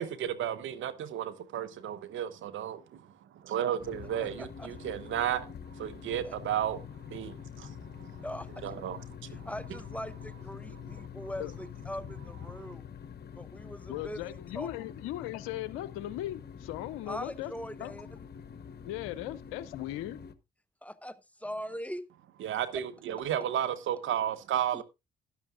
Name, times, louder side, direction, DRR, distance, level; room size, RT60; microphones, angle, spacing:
voice 1, 0.0-6.8 7.1-8.3 8.6-9.5 10.7-11.1 12.5-12.7 22.4-24.8, right 10 dB, 70° right, 1.0 m, -34 dB
sound 1, 3.8-20.3, left 7 dB, 55° left, 1.0 m, -46 dB
voice 2, 4.2-4.7 6.2-6.3 8.2-8.5 9.3-12.8 13.3-14.2 14.5-14.7 17.1-18.1 20.8-21.2 21.4-22.1 24.7-24.8, equal, 5° left, 1.0 m, -41 dB
voice 3, 13.9-17.5 17.8-17.9 18.9-20.2, left 14 dB, 85° left, 0.5 m, -38 dB
13.0 x 10.5 x 2.5 m
hypercardioid pair, 45°, 21 cm